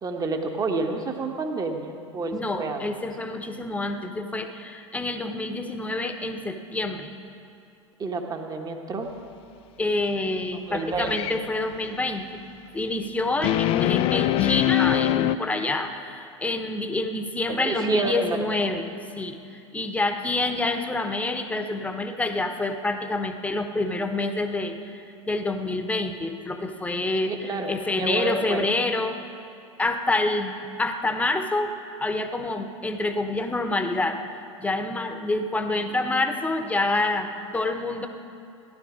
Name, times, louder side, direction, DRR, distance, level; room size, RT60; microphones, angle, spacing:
voice 1, 0.0-2.9 8.0-9.1 10.7-11.4 17.5-18.5 27.3-28.7, right 3 dB, 25° right, 4 dB, 1.3 m, -29 dB
voice 2, 2.3-7.1 9.8-12.4 12.7-18.9 19.2-29.2 29.8-34.2 34.6-38.1, left 2 dB, 10° left, 6 dB, 1.1 m, -27 dB
sound 1, 10.9-11.3 13.4-15.4, left 13 dB, 35° left, 0.4 m, -22 dB
16.5 x 11.5 x 5.1 m, 2.6 s
hypercardioid pair, 90°, 16 cm